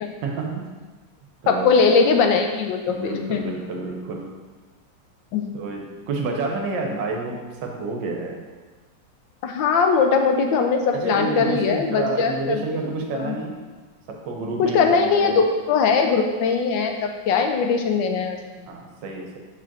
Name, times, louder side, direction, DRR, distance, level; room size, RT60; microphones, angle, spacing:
voice 1, 0.2-0.7 1.4-1.9 2.9-4.3 5.5-8.4 10.9-13.6 14.1-15.4 18.7-19.4, right 3 dB, 75° right, 1 dB, 1.6 m, -29 dB
voice 2, 1.5-3.4 5.3-5.4 9.4-12.8 13.1-13.3 14.6-18.7, left 5 dB, 80° left, 4 dB, 1.4 m, -20 dB
5.0 x 4.2 x 6.0 m, 1.3 s
omnidirectional pair, 2.0 m